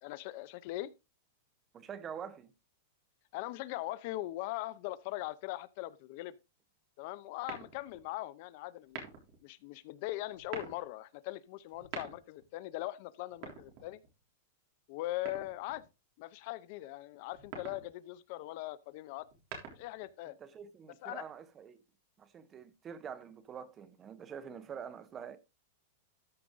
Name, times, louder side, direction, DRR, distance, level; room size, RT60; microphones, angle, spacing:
voice 1, 0.0-0.9 3.3-6.3 7.0-9.0 9.4-14.0 14.9-15.8 16.2-19.3 19.7-20.4 21.0-21.3, left 17 dB, 45° left, 0.5 m, -40 dB
voice 2, 1.7-2.5 20.3-21.8 22.2-25.4, right 7 dB, 20° right, 0.7 m, -46 dB
sound 1, 7.4-8.1 8.8-9.4 10.3-10.8 11.7-12.5 13.3-14.2 15.3-15.9 17.3-17.9 19.2-20.1, right 6 dB, 40° right, 3.4 m, -46 dB
13.0 x 4.9 x 3.9 m
supercardioid pair, 165°, 0 cm